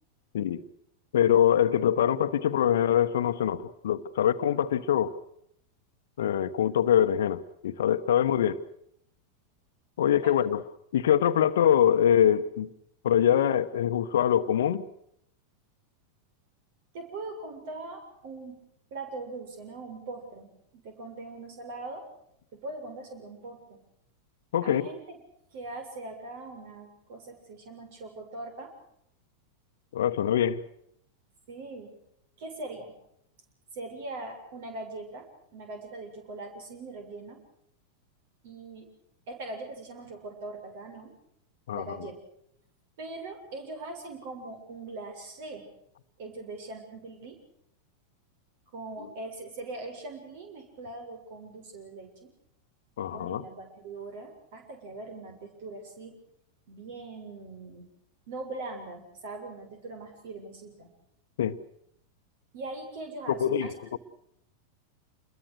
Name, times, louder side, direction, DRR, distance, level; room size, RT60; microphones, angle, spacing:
voice 1, 1.1-5.1 6.2-8.6 10.0-10.6 10.9-12.7 13.0-14.8 24.5-24.9 29.9-30.6 41.7-41.8 53.0-53.4 61.4-61.6 63.3-64.0, left 10 dB, 60° left, 1.2 m, -24 dB
voice 2, 10.0-10.4 16.9-22.1 22.5-23.8 24.6-25.0 25.5-28.7 31.5-31.9 32.4-33.0 33.7-37.4 38.4-38.9 39.3-41.1 41.7-42.1 43.0-45.7 46.2-47.4 48.7-52.3 53.0-56.2 56.7-57.9 58.3-60.9 62.5-64.0, right 2 dB, 50° right, 7.0 m, -41 dB
27.5 x 22.0 x 6.5 m
figure-of-eight pair, 90°, 0 cm